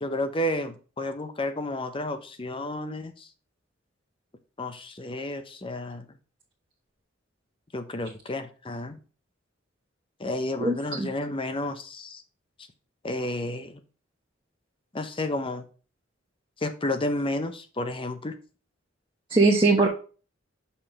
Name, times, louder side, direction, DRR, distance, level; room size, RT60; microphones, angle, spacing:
voice 1, 0.0-3.3 4.6-6.1 7.7-9.0 10.2-12.2 13.0-13.8 14.9-15.6 16.6-18.4, left 1 dB, 25° left, 9 dB, 0.7 m, -31 dB
voice 2, 10.6-11.1 19.3-19.9, right 3 dB, 25° right, -1 dB, 1.1 m, -20 dB
6.6 x 5.7 x 3.2 m, 0.36 s
head